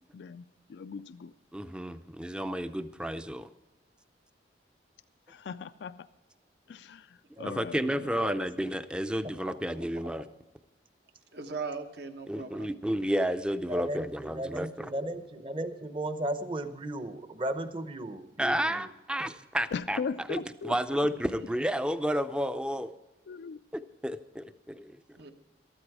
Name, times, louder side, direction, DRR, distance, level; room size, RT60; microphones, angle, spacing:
voice 1, 0.1-1.3 5.3-6.1 6.7-8.2 19.7-21.1 23.3-23.6, left 5 dB, 75° left, 13 dB, 0.4 m, -39 dB
voice 2, 1.5-3.5 7.4-10.2 12.3-14.9 18.4-20.0 20.3-20.4 20.6-22.9 23.7-24.9, equal, 5° right, 12 dB, 0.5 m, -31 dB
voice 3, 11.3-12.7 21.1-21.3 25.1-25.3, right 4 dB, 70° right, 6 dB, 1.2 m, -39 dB
voice 4, 13.7-18.9 19.2-19.3, right 1 dB, 30° right, 10 dB, 0.8 m, -36 dB
13.5 x 13.0 x 4.8 m, 1.0 s
head